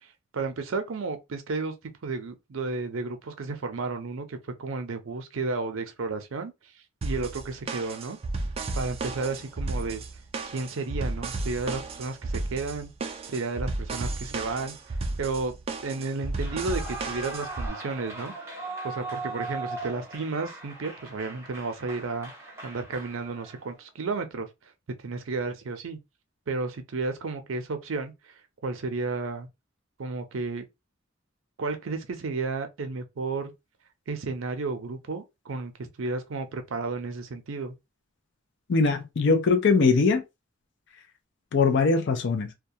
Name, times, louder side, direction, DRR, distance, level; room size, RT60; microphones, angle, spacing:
voice 1, 0.0-1.7 2.0-6.5 7.0-8.2 8.7-10.0 10.5-12.9 13.3-18.3 18.8-24.5 25.0-26.0 26.5-28.3 28.6-29.5 30.0-30.6 31.6-33.5 34.1-37.7, right 3 dB, 80° right, 0.5 m, -32 dB
sound 1, 7.0-17.7, right 3 dB, 30° right, 0.4 m, -33 dB
Clapping / Cheering / Applause, 16.3-23.7, right 3 dB, 15° right, 0.8 m, -39 dB
voice 2, 38.7-40.2 41.5-42.5, left 4 dB, 60° left, 0.5 m, -21 dB
2.3 x 2.2 x 2.7 m
head